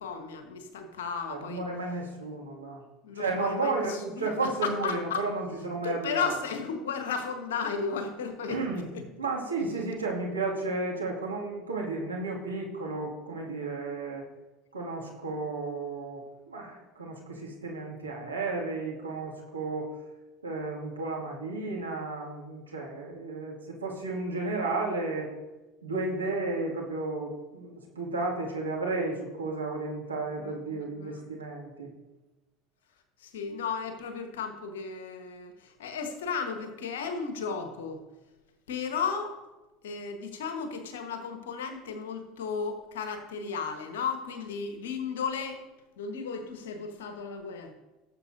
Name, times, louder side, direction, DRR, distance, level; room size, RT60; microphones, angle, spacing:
voice 1, 0.0-1.6 3.0-4.3 4.6-5.3 5.8-8.6 8.9-9.3 30.4-31.2 33.2-38.0 38.7-39.4 39.8-45.6 46.0-47.7, left 5 dB, 70° left, 6 dB, 1.3 m, -34 dB
voice 2, 1.3-2.8 3.1-6.4 8.5-8.9 9.2-14.2 14.7-19.9 20.4-25.3 25.8-31.9, right 3 dB, 85° right, -2 dB, 2.2 m, -33 dB
17.5 x 7.2 x 2.7 m, 1.1 s
figure-of-eight pair, 70°, 0 cm